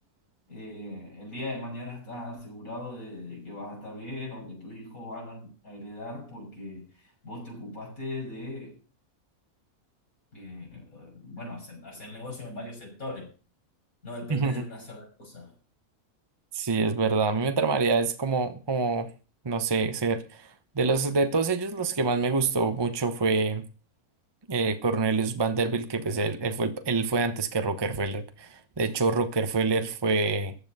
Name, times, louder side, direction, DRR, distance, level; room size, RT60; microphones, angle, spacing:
voice 1, 0.5-8.8 10.3-13.3 14.0-15.5, left 1 dB, 65° left, 6.5 m, -39 dB
voice 2, 14.3-14.6 16.5-19.1 19.4-23.6 24.5-30.5, right 4 dB, 20° right, 0.9 m, -26 dB
15.0 x 10.0 x 5.6 m
omnidirectional pair, 1.6 m